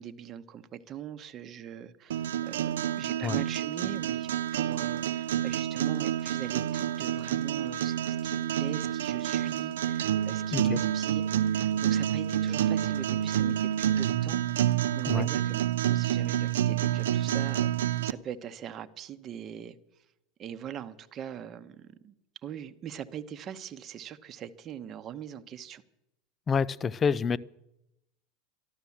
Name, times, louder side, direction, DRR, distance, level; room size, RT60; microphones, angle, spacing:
voice 1, 0.0-11.2 11.5-15.6 15.9-19.8 20.4-22.1 22.4-25.8, right 9 dB, 40° right, 9 dB, 1.0 m, -42 dB
sound 1, 2.1-18.1, right 11 dB, 85° right, 0.5 m, -28 dB
voice 2, 26.5-27.4, left 6 dB, 25° left, 21 dB, 0.5 m, -28 dB
12.5 x 12.5 x 7.2 m, 0.88 s
hypercardioid pair, 100°, 0 cm